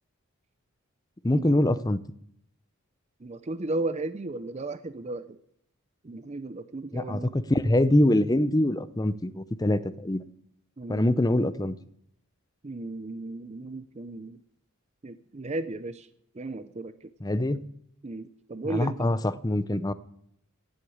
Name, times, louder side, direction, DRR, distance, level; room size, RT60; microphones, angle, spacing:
voice 1, 1.2-2.0 6.9-10.2 10.9-11.8 17.2-17.6 18.6-19.9, left 1 dB, 15° left, 14 dB, 0.6 m, -24 dB
voice 2, 3.2-5.4 6.0-7.3 10.8-11.1 12.6-14.4 15.0-16.1 16.3-17.1 18.0-19.1, right 2 dB, 30° right, 12 dB, 0.6 m, -35 dB
16.5 x 8.0 x 8.7 m, 0.72 s
head